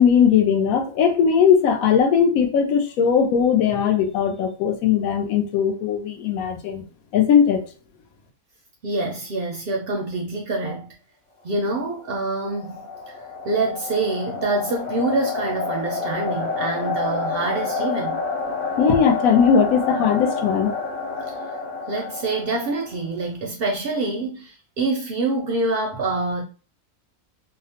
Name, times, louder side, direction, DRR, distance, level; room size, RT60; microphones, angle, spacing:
voice 1, 0.0-6.9 7.1-7.6 18.8-20.7, left 7 dB, 80° left, 1.0 m, -19 dB
voice 2, 8.8-11.0 11.4-12.9 13.4-18.2 21.9-26.4, right 2 dB, 65° right, 0.6 m, -26 dB
sound 1, 12.1-23.0, left 4 dB, 50° left, 1.2 m, -29 dB
2.8 x 2.0 x 2.8 m
omnidirectional pair, 1.5 m